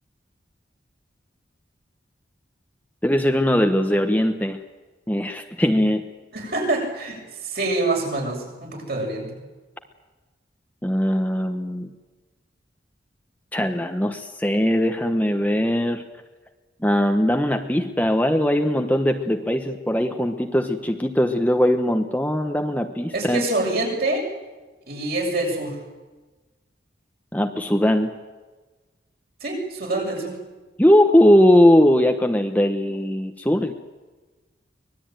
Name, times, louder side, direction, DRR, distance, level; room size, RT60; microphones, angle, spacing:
voice 1, 3.0-4.6 5.1-6.0 10.8-11.9 13.5-16.0 16.8-23.4 27.3-28.1 30.8-33.7, left 1 dB, 10° left, 4 dB, 1.1 m, -20 dB
voice 2, 6.3-9.4 23.1-24.3 24.9-25.8 29.4-30.4, right 2 dB, 55° right, 0 dB, 7.1 m, -26 dB
24.5 x 20.0 x 9.2 m, 1.2 s
head